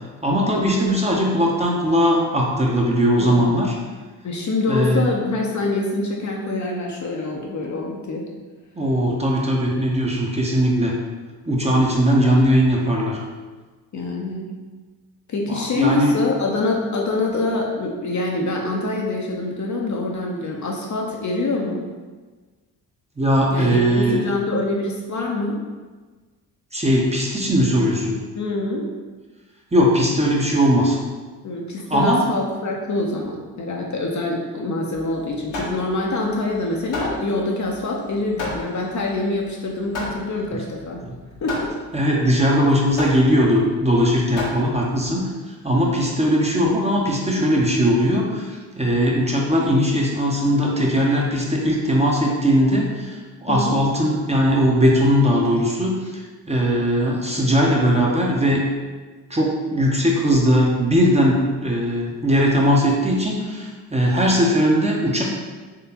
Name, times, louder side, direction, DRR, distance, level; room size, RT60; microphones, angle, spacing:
voice 1, 0.2-3.7 4.7-5.1 8.8-10.9 11.5-13.2 15.5-16.2 23.2-24.2 26.7-28.1 29.7-31.0 31.9-32.2 41.1-41.2 41.9-58.6 59.3-65.2, equal, 15° right, -2 dB, 0.8 m, -19 dB
voice 2, 3.2-3.5 4.2-8.2 13.9-14.5 15.3-21.8 23.5-25.6 28.4-28.9 31.4-41.0 41.4-41.7 53.5-53.8, left 2 dB, 35° left, -1 dB, 0.7 m, -25 dB
Hammer, 34.9-45.2, left 2 dB, 75° left, 1.3 m, -33 dB
3.7 x 3.3 x 2.9 m, 1.3 s
hypercardioid pair, 45°, 48 cm